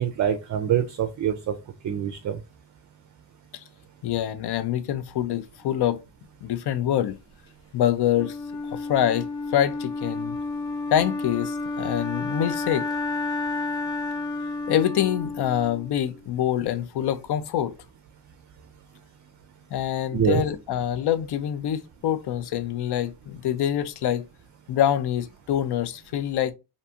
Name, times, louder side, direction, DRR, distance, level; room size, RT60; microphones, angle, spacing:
voice 1, 0.0-1.5 1.8-2.4 20.1-20.4, right 9 dB, 45° right, 0.4 m, -25 dB
voice 2, 4.0-6.0 6.4-7.2 7.7-8.4 8.7-10.4 10.9-12.9 14.7-17.7 19.7-24.3 24.7-26.5, left 10 dB, 65° left, 0.5 m, -25 dB
Wind instrument woodwind instrument, 8.1-16.2, left 3 dB, 85° left, 1.2 m, -31 dB
2.6 x 2.2 x 2.7 m
cardioid pair, 60°, 43 cm